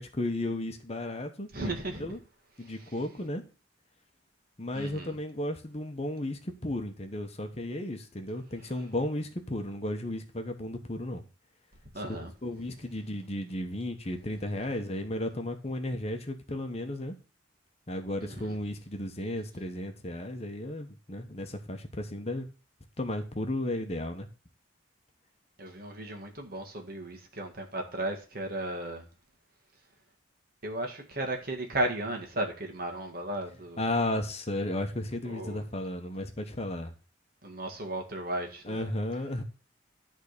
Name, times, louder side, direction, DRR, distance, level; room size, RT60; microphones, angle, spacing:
voice 1, 0.0-2.2 2.6-3.4 4.6-11.2 12.0-17.1 17.9-22.5 23.0-24.3 33.8-36.9 38.6-39.4, left 1 dB, 30° left, 1.0 m, -34 dB
voice 2, 1.5-2.1 4.7-5.2 11.9-12.3 18.2-18.6 25.6-29.0 30.6-33.8 35.3-35.6 37.4-38.9, right 1 dB, 45° right, 1.8 m, -35 dB
11.0 x 3.7 x 6.7 m
head